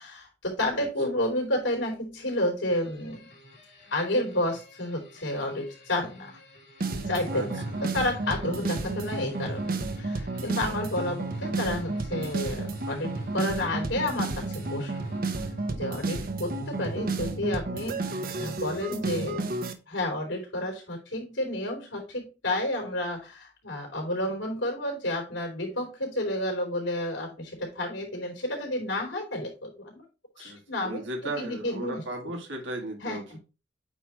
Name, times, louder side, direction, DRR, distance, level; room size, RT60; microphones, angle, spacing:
voice 1, 0.0-3.3 3.9-6.4 7.1-15.0 15.7-19.5 19.9-30.0 30.4-32.3 33.0-33.4, left 1 dB, 85° left, 3.7 m, -31 dB
sound 1, 2.7-15.9, left 1 dB, 65° left, 3.5 m, -52 dB
sound 2, 6.8-19.7, right 2 dB, 50° right, 0.9 m, -32 dB
voice 2, 7.3-7.8 30.4-33.4, right 1 dB, 85° right, 2.1 m, -36 dB
8.9 x 3.2 x 4.4 m
head